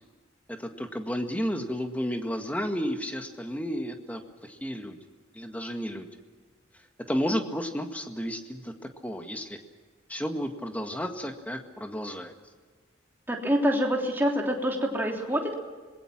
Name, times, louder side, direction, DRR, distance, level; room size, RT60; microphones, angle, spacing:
voice 1, 0.5-5.0 5.3-6.1 7.1-8.7 9.0-9.6 10.1-12.3, equal, 10° left, 5 dB, 1.8 m, -32 dB
voice 2, 13.3-15.5, equal, 10° right, 0 dB, 3.2 m, -26 dB
26.0 x 21.5 x 6.1 m, 1.5 s
head